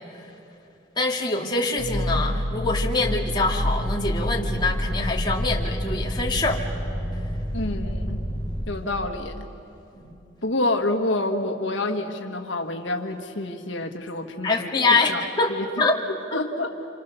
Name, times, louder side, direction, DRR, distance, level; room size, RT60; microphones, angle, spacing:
voice 1, 1.0-6.6 9.9-10.2 14.4-15.5 15.8-16.0, left 3 dB, 25° left, -1 dB, 2.3 m, -24 dB
sound 1, 1.8-8.6, equal, 30° right, 7.1 m, -27 dB
voice 2, 7.5-8.2 8.7-9.5 10.4-14.7 15.1-15.2 15.5-16.7, left 2 dB, 80° left, 4 dB, 1.5 m, -28 dB
30.0 x 27.0 x 6.9 m, 2.9 s
head